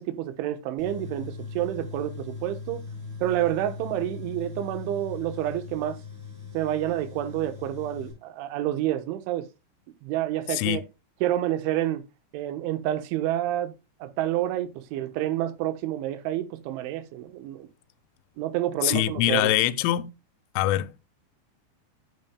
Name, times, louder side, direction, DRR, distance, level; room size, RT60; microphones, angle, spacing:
voice 1, 0.0-2.8 3.2-6.0 6.5-9.5 10.0-10.8 11.2-12.0 12.3-13.8 14.0-17.7 18.4-19.5, right 13 dB, 80° right, 3.4 m, -29 dB
Tools, 0.8-8.1, left 4 dB, 20° right, 6.2 m, -39 dB
voice 2, 10.5-10.8 18.8-20.1 20.6-21.1, left 14 dB, 90° left, 3.3 m, -24 dB
11.0 x 9.1 x 2.2 m
omnidirectional pair, 5.5 m